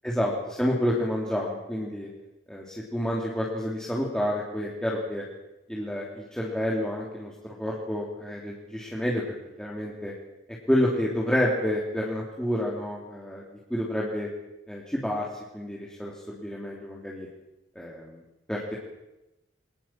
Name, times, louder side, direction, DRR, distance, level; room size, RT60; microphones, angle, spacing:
voice 1, 0.0-2.1 2.5-5.2 5.7-9.2 9.6-10.1 10.7-14.3 14.7-15.3 15.5-17.3 17.7-18.2 18.5-18.7, equal, 5° left, -4 dB, 3.3 m, -29 dB
23.5 x 19.5 x 7.7 m, 0.96 s
head